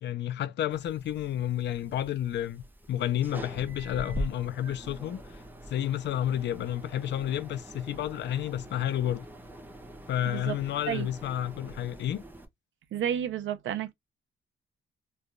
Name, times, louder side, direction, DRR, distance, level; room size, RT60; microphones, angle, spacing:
voice 1, 0.0-5.4 5.7-9.3 10.1-12.2, left 11 dB, 55° left, 0.4 m, -31 dB
sound 1, 0.7-12.5, right 1 dB, 10° right, 0.5 m, -43 dB
voice 2, 10.2-10.6 10.9-11.1 12.9-13.9, right 9 dB, 70° right, 0.5 m, -31 dB
3.1 x 2.2 x 2.4 m
wide cardioid pair, 165°, 21 cm